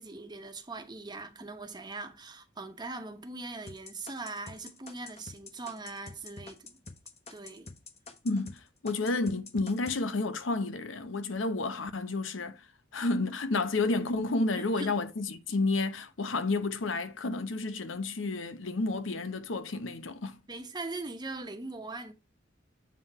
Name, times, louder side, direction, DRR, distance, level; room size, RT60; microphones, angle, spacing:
voice 1, 0.0-6.8 7.3-7.7 14.5-15.0 20.5-22.1, right 3 dB, 20° right, 1.0 m, -41 dB
sound 1, 3.7-8.6 8.9-10.0, left 3 dB, 35° left, 0.9 m, -46 dB
voice 2, 8.2-12.7 12.9-20.4, left 3 dB, 70° left, 0.8 m, -31 dB
7.7 x 3.5 x 5.4 m
head